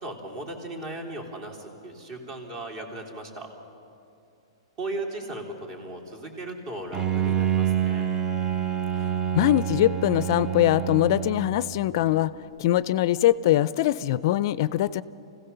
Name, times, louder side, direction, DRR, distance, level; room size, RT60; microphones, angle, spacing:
voice 1, 0.0-3.5 4.8-8.1, right 2 dB, 40° right, 2 dB, 3.4 m, -37 dB
Bowed string instrument, 6.9-11.9, right 10 dB, 20° right, 0.8 m, -27 dB
voice 2, 9.3-12.3 12.6-15.0, left 14 dB, 50° left, 17 dB, 0.4 m, -22 dB
25.0 x 16.0 x 6.8 m, 2.7 s
hypercardioid pair, 150°, 3 cm